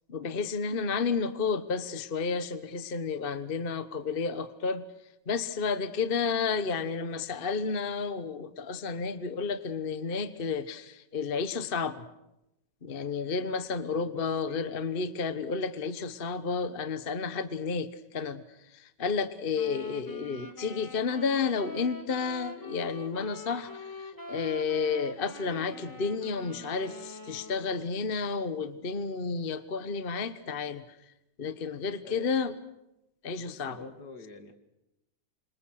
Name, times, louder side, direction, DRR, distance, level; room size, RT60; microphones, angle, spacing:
voice 1, 0.1-4.8 5.3-12.1 12.8-31.0 31.4-32.6 33.2-33.9, left 5 dB, 35° left, 13 dB, 1.2 m, -31 dB
voice 2, 13.9-14.7 32.0-32.3 33.4-34.5, left 3 dB, 65° left, 8 dB, 3.1 m, -47 dB
sound 1, 19.5-27.9, left 1 dB, 10° left, 2.8 m, -44 dB
29.0 x 26.5 x 6.5 m, 0.89 s
omnidirectional pair, 1.9 m